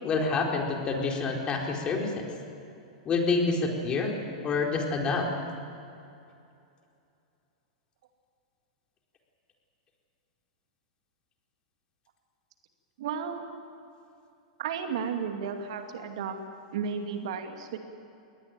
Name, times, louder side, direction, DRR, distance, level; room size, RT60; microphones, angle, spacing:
voice 1, 0.0-2.2 3.1-4.1 4.4-5.3, left 4 dB, 30° left, 1 dB, 4.4 m, -27 dB
voice 2, 13.0-13.4 14.6-16.4 16.7-17.8, right 6 dB, 65° right, 5 dB, 2.4 m, -33 dB
22.0 x 18.5 x 9.1 m, 2.6 s
hypercardioid pair, 110°, 3 cm